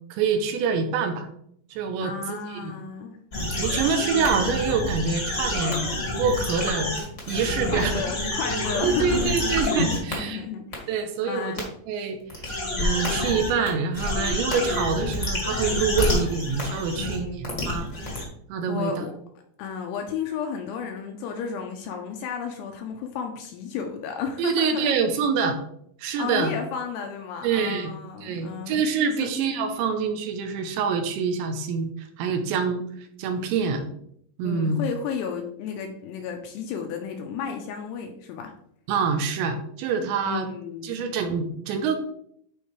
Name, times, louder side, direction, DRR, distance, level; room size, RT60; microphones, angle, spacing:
voice 1, 0.1-1.3 1.7-2.7 3.4-5.8 6.2-6.9 7.3-8.0 8.8-10.4 10.9-12.4 12.8-17.9 18.5-19.0 24.4-25.6 26.0-26.5 27.4-27.9 28.2-32.8 33.2-33.9 34.4-34.8 38.9-40.5 40.8-42.0, right 5 dB, 85° right, 5 dB, 3.0 m, -26 dB
voice 2, 2.0-3.2 7.7-11.0 11.2-11.6 16.9-18.2 18.7-19.1 19.6-24.9 26.2-28.8 29.2-29.3 33.4-33.6 34.4-38.5 40.2-41.0, left 6 dB, 80° left, 4 dB, 2.6 m, -33 dB
sound 1, 3.3-10.1 10.7-10.8 11.6-11.7 12.3-13.7 13.9-18.2, left 1 dB, 40° left, 1.0 m, -28 dB
11.5 x 4.6 x 3.3 m, 0.68 s
omnidirectional pair, 5.4 m